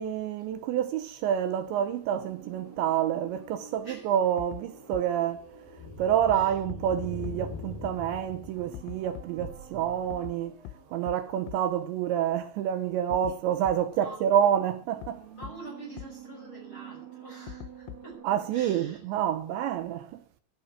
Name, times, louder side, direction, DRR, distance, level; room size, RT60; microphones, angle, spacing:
voice 1, 0.0-5.5 6.0-10.5 10.9-15.2 18.2-20.1, right 10 dB, 75° right, 2.8 m, -28 dB
sound 1, 1.6-7.3 8.4-11.4 14.2-19.4 19.7-19.8, right 8 dB, 40° right, 3.3 m, -50 dB
voice 2, 3.8-4.1 6.3-6.6 13.3-13.4 13.9-14.3 15.3-18.2 18.5-19.2, right 2 dB, 25° left, 6.1 m, -46 dB
sound 2, 4.2-9.6, left 3 dB, 60° left, 6.3 m, -42 dB
sound 3, 4.4-4.6 4.9-5.0 6.3-6.4 6.7-6.8 7.2-7.3 8.7-9.5 10.1-10.3 10.6-10.7 11.1-11.2 11.5-11.6 13.1-13.3 13.6-13.7 15.0-15.1 15.4-15.5 16.0-16.1 17.5-18.2, left 14 dB, 90° left, 2.3 m, -40 dB
15.0 x 11.0 x 6.1 m
omnidirectional pair, 5.9 m